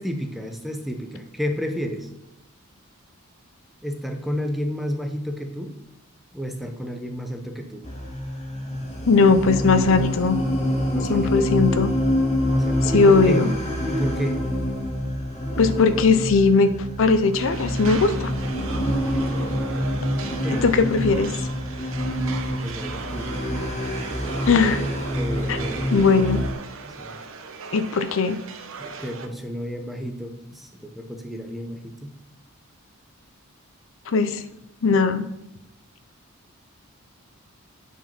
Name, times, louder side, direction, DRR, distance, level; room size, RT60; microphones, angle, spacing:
voice 1, 0.0-2.1 3.8-5.8 6.3-7.8 10.9-11.5 12.5-13.5 13.9-14.4 19.1-20.7 22.5-23.4 25.1-26.2 26.8-27.2 28.8-32.2, equal, ahead, 4 dB, 0.8 m, -31 dB
sound 1, 7.8-26.5, equal, 30° left, 1.9 m, -26 dB
voice 2, 9.1-10.4 11.1-11.9 12.8-13.5 15.6-18.3 20.5-21.3 24.5-24.8 25.5-25.6 25.9-26.5 27.7-28.4 34.1-34.4 34.8-35.3, left 4 dB, 60° left, 11 dB, 0.5 m, -19 dB
sound 2, 17.4-29.3, right 5 dB, 65° right, 0.9 m, -38 dB
9.1 x 4.8 x 5.9 m, 0.89 s
head